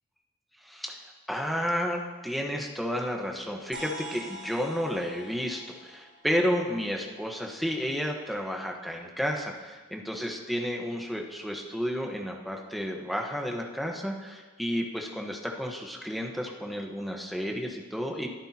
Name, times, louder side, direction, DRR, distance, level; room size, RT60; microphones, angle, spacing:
voice 1, 0.6-1.0 1.3-18.3, equal, ahead, 1 dB, 1.2 m, -31 dB
sound 1, 3.7-7.5, right 1 dB, 60° right, 3.7 m, -45 dB
22.0 x 10.0 x 2.9 m, 1.3 s
head